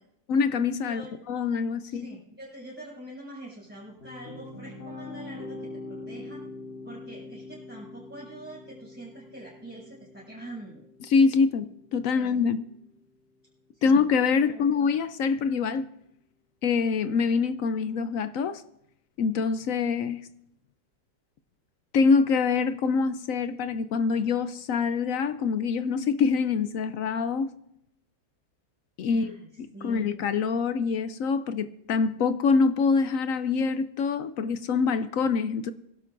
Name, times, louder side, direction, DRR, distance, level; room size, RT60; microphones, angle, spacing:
voice 1, 0.3-1.0 1.3-2.1 11.1-12.6 13.8-15.9 16.6-18.6 19.2-20.2 21.9-27.5 29.0-29.4 29.8-35.7, left 5 dB, 70° left, 0.8 m, -25 dB
voice 2, 0.8-1.1 1.8-5.6 5.8-6.4 6.8-10.8 12.1-12.3 13.7-14.0 14.4-14.7 29.1-29.5 29.7-30.1, right 1 dB, 5° right, 6.8 m, -44 dB
sound 1, 3.6-12.8, left 2 dB, 85° left, 3.7 m, -44 dB
25.5 x 12.0 x 2.6 m
omnidirectional pair, 1.9 m